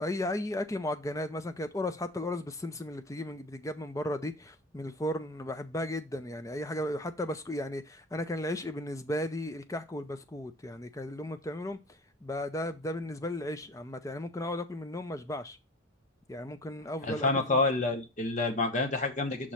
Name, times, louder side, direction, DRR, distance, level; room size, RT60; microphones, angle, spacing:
voice 1, 0.0-11.8 12.2-15.6 16.3-17.6, left 1 dB, 15° left, 0.5 m, -35 dB
voice 2, 17.0-19.5, left 3 dB, 40° left, 0.9 m, -28 dB
6.3 x 3.1 x 5.6 m
head